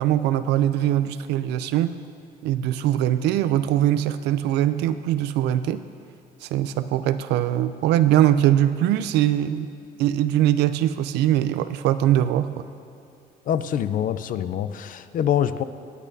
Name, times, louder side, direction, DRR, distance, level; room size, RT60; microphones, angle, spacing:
voice 1, 0.0-1.9 2.4-5.8 6.4-9.7 10.0-12.6, right 12 dB, 85° right, 12 dB, 0.5 m, -22 dB
voice 2, 13.5-15.6, left 9 dB, 55° left, 13 dB, 0.5 m, -25 dB
22.5 x 8.3 x 2.7 m, 2.7 s
cardioid pair, 110°, 17 cm